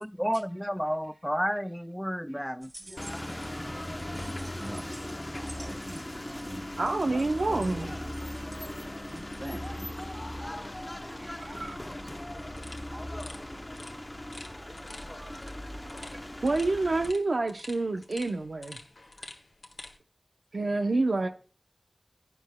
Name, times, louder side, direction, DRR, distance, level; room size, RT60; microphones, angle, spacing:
voice 1, 0.0-2.7, equal, ahead, 0.3 m, -31 dB
voice 2, 1.0-1.6 2.3-2.5 2.8-5.8 7.9-9.5 9.9-12.6 12.9-16.2 18.8-18.9 20.5-21.3, right 1 dB, 50° right, 4.2 m, -55 dB
sound 1, 2.6-3.6 3.9-8.8 9.1-10.2, right 1 dB, 30° right, 1.6 m, -44 dB
sound 2, 3.0-17.1, left 1 dB, 25° left, 0.8 m, -38 dB
voice 3, 6.8-7.9 11.6-11.8 15.2-15.3 16.4-18.8 20.5-21.3, right 2 dB, 85° right, 0.7 m, -28 dB
sound 3, 12.5-20.0, left 2 dB, 90° left, 1.6 m, -49 dB
11.5 x 9.6 x 2.2 m
wide cardioid pair, 45°, 0 cm